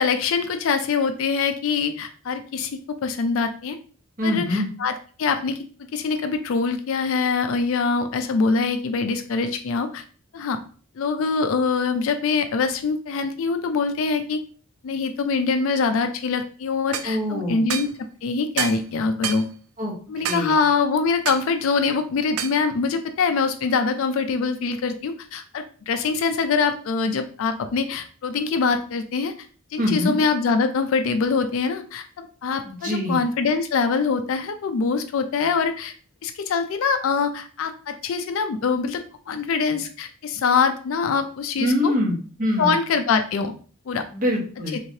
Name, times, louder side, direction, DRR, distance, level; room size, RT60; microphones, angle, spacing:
voice 1, 0.0-3.8 4.2-5.6 5.9-10.0 10.3-10.6 11.0-14.4 14.8-17.9 18.2-19.5 20.1-29.3 29.7-35.9 36.2-41.9 42.6-43.5 43.9-44.0 44.7-44.8, left 5 dB, 65° left, 8 dB, 0.3 m, -24 dB
voice 2, 4.2-4.7 17.0-17.7 19.8-19.9 20.2-20.5 29.8-30.2 32.6-33.2 41.6-42.8 44.1-44.8, left 1 dB, 40° right, -2 dB, 1.1 m, -24 dB
sound 1, 16.9-17.1 17.7-17.9 18.6-18.8 19.2-19.4 20.2-20.5 21.3-21.5 22.4-22.6, right 9 dB, 70° right, 0.3 m, -28 dB
3.2 x 3.1 x 2.7 m, 0.41 s
head